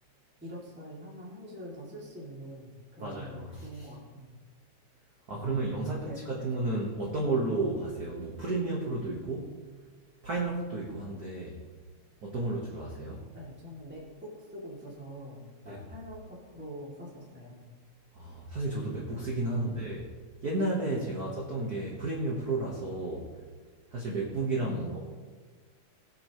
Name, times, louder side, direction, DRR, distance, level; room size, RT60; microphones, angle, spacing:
voice 1, 0.4-4.4 5.3-6.2 6.7-7.3 13.3-17.7 19.5-19.8 21.0-21.4 24.5-25.0, equal, 5° right, -6 dB, 2.2 m, -45 dB
voice 2, 3.0-3.9 5.3-9.5 10.2-11.6 12.2-13.2 15.6-15.8 18.1-20.0 20.4-23.3 23.9-25.0, right 2 dB, 45° right, -2 dB, 1.3 m, -32 dB
20.0 x 6.9 x 3.1 m, 1.5 s
omnidirectional pair, 3.3 m